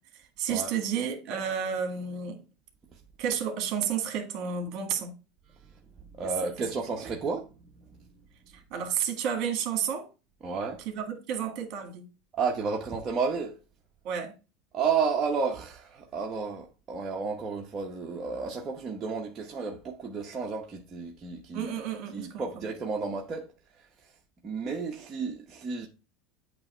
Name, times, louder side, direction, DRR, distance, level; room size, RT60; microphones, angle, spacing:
voice 1, 0.4-2.4 3.2-5.1 7.0-7.2 8.7-10.1 10.8-12.0 14.0-14.3 21.5-22.4, right 7 dB, 55° right, 1.6 m, -31 dB
voice 2, 6.1-7.5 10.4-10.8 12.3-13.6 14.7-21.7 22.1-23.5 24.4-25.9, right 5 dB, 25° right, 0.9 m, -32 dB
8.5 x 2.9 x 4.3 m
supercardioid pair, 135°, 0 cm